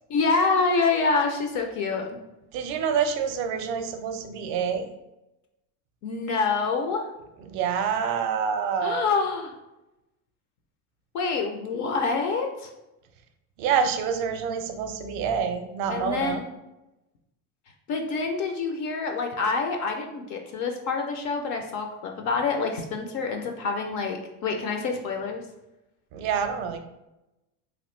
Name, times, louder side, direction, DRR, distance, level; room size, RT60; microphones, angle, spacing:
voice 1, 0.1-2.0 6.0-7.1 8.8-9.6 11.1-12.7 15.9-16.4 17.9-25.4, left 4 dB, 40° left, 3 dB, 0.4 m, -26 dB
voice 2, 2.5-4.9 7.5-9.1 13.6-16.4 26.1-26.8, right 7 dB, 55° right, 7 dB, 0.5 m, -27 dB
3.0 x 2.4 x 3.1 m, 0.94 s
supercardioid pair, 120°, 45 cm